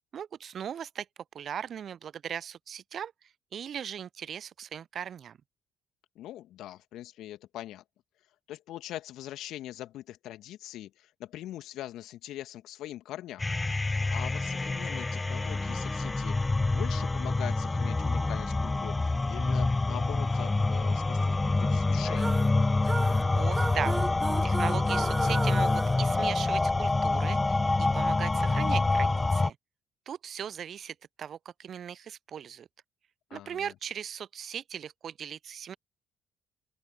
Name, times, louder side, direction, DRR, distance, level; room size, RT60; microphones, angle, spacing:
voice 1, 0.1-1.1 1.3-3.1 3.5-5.4 23.4-24.0 24.4-29.6 30.1-32.7 33.3-35.8, right 8 dB, 55° right, 0.6 m, -38 dB
voice 2, 6.2-7.8 8.5-13.5 13.9-22.4 33.3-33.7, left 13 dB, 65° left, 2.2 m, -42 dB
sound 1, 13.4-29.5, left 3 dB, 20° left, 0.4 m, -27 dB
sound 2, 22.2-26.9, right 3 dB, 25° right, 1.4 m, -36 dB
open air
figure-of-eight pair, 45°, 0 cm